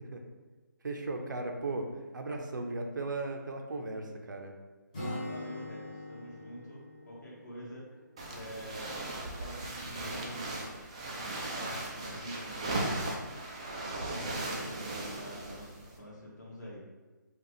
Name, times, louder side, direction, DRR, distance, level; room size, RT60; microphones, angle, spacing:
voice 1, 0.8-4.5, right 2 dB, 70° right, 3 dB, 0.6 m, -36 dB
voice 2, 4.9-8.0 8.3-9.1 9.4-10.8 11.5-13.1 13.9-16.9, equal, 60° left, -5 dB, 1.5 m, -47 dB
Acoustic guitar, 4.9-8.7, left 1 dB, 25° left, 1.2 m, -43 dB
sound 1, 8.2-16.0, right 2 dB, 20° right, 0.3 m, -37 dB
4.9 x 2.4 x 3.1 m, 1.3 s
hypercardioid pair, 170°, 11 cm